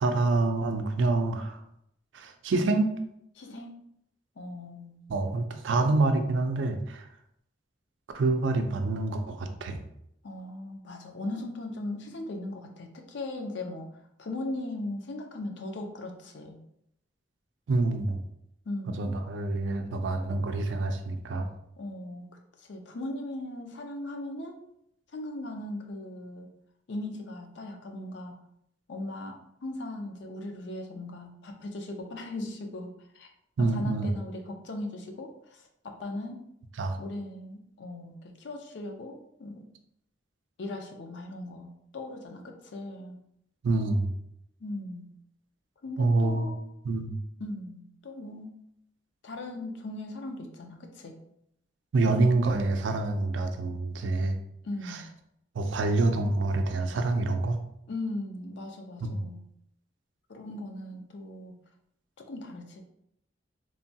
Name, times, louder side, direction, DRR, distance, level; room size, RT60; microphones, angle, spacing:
voice 1, 0.0-1.6 2.1-2.9 5.1-7.1 8.1-9.8 17.7-18.2 19.0-21.5 33.6-34.1 36.8-37.0 43.6-44.1 46.0-46.5 46.8-47.2 51.9-54.4 54.9-55.0 55.6-57.6 59.0-59.2, right 2 dB, 80° right, 6 dB, 0.4 m, -26 dB
voice 2, 3.4-3.8 4.4-5.0 10.2-13.9 14.2-16.6 18.7-19.0 21.8-22.3 22.6-24.6 25.1-26.5 26.9-28.4 28.9-33.3 33.6-36.5 37.0-39.7 40.6-43.2 44.6-45.1 45.8-46.7 47.4-48.6 49.2-51.1 54.6-55.1 57.9-59.4 60.3-61.5 62.2-62.8, left 2 dB, 70° left, 4 dB, 0.5 m, -38 dB
3.1 x 2.2 x 2.6 m, 0.75 s
head